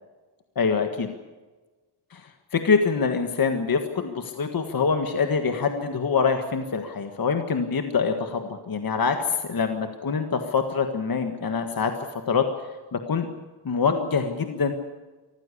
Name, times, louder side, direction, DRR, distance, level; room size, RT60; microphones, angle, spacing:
voice 1, 0.5-1.1 2.1-11.9 12.3-12.4 12.9-13.3 13.6-14.7, left 5 dB, 45° left, 6 dB, 1.6 m, -25 dB
24.0 x 15.0 x 8.4 m, 1.3 s
wide cardioid pair, 150°, 48 cm